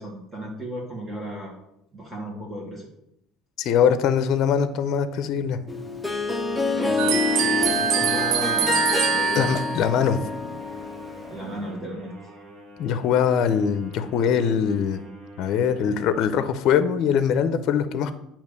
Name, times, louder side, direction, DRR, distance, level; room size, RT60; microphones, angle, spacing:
voice 1, 0.0-1.5 1.9-2.9 6.8-8.8 9.1-9.6 11.3-12.1, right 1 dB, 20° right, -3 dB, 1.6 m, -34 dB
voice 2, 3.6-5.6 9.4-10.2 12.8-15.0 15.4-18.1, left 7 dB, 55° left, 11 dB, 0.6 m, -22 dB
Harp, 5.7-11.5, left 4 dB, 10° left, 0.7 m, -27 dB
sound 1, 7.0-17.2, right 1 dB, 50° right, 1.5 m, -46 dB
sound 2, 7.0-9.8, right 10 dB, 70° right, 0.5 m, -24 dB
8.8 x 3.0 x 6.5 m, 0.81 s
cardioid pair, 130°, 0 cm